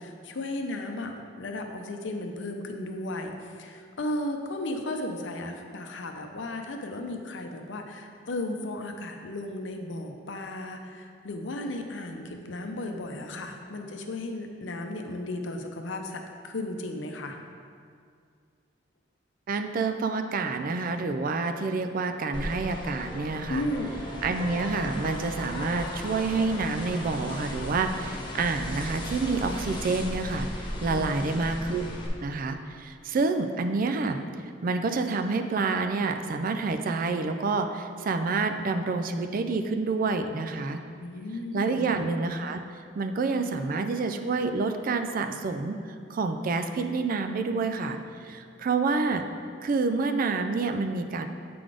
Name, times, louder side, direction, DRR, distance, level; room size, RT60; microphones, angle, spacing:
voice 1, 0.0-17.4 23.5-24.0 30.9-31.3 41.0-41.8, left 1 dB, 75° left, 4 dB, 0.6 m, -35 dB
voice 2, 19.5-23.7 24.2-34.2 34.6-40.8 41.5-42.6 43.0-45.8 46.1-48.0 48.2-49.2 49.6-51.3, right 3 dB, 50° right, 7 dB, 0.4 m, -28 dB
sound 1, 22.3-32.1, left 1 dB, 25° left, 0.9 m, -36 dB
7.6 x 4.0 x 4.9 m, 2.2 s
head